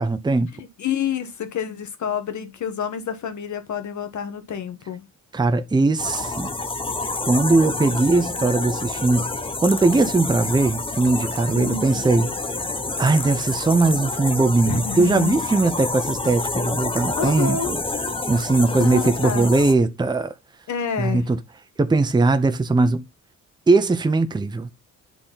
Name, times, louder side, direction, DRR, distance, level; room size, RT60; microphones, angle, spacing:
voice 1, 0.0-0.5 5.3-6.5 7.2-9.3 9.6-12.3 13.0-17.8 18.3-20.3 21.0-21.4 21.8-23.0 23.7-24.7, right 3 dB, 15° right, 0.7 m, -20 dB
voice 2, 0.5-5.1 11.5-12.0 14.7-15.4 17.2-17.7 18.8-19.5 20.7-21.2, left 7 dB, 60° left, 1.4 m, -28 dB
sound 1, 6.0-19.7, left 3 dB, 15° left, 0.9 m, -28 dB
8.5 x 3.8 x 4.0 m
cardioid pair, 80°, 33 cm